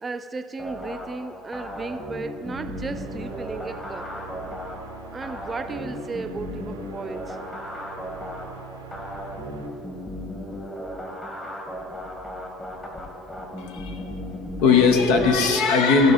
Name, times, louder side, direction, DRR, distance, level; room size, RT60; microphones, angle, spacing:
voice 1, 0.0-4.1 5.1-7.4, right 3 dB, 30° right, 10 dB, 0.4 m, -34 dB
sound 1, 0.6-15.3, left 1 dB, 25° left, 2.0 m, -36 dB
sound 2, 2.4-9.7, right 5 dB, 90° right, 0.6 m, -43 dB
voice 2, 13.6-14.2 14.6-16.1, left 5 dB, 70° left, 6 dB, 0.8 m, -19 dB
14.5 x 5.2 x 4.3 m, 2.7 s
hypercardioid pair, 60°, 0 cm